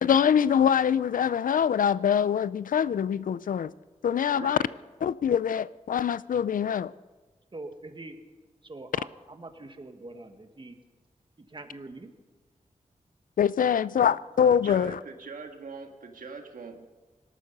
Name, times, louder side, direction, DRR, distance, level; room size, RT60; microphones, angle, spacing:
voice 1, 0.0-3.7 4.0-4.6 5.0-6.9 13.4-15.0, left 8 dB, 80° left, 0.4 m, -24 dB
voice 2, 4.3-4.7 14.6-16.9, right 4 dB, 80° right, 1.8 m, -42 dB
voice 3, 7.5-8.2 8.6-10.8 11.4-12.1 13.9-14.2, right 2 dB, 35° right, 1.7 m, -44 dB
18.5 x 12.5 x 5.4 m
cardioid pair, 65°, 14 cm